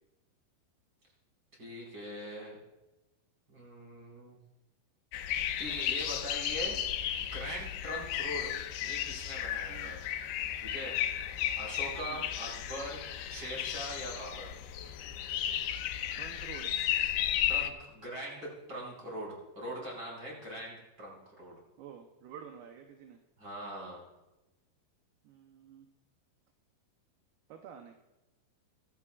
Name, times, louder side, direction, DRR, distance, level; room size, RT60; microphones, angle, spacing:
voice 1, 1.6-2.6 3.5-4.4 5.6-6.8 7.2-8.5 8.8-10.0 10.6-11.0 11.6-13.0 13.3-14.5 17.5-21.6 23.4-24.0, right 1 dB, 25° right, -4 dB, 5.2 m, -41 dB
sound 1, 5.1-17.7, left 11 dB, 85° left, 2.5 m, -34 dB
voice 2, 16.1-16.7 21.8-23.2 25.2-25.9 27.5-28.0, right 8 dB, 75° right, 4 dB, 2.4 m, -49 dB
23.5 x 13.5 x 2.4 m, 1.0 s
omnidirectional pair, 5.2 m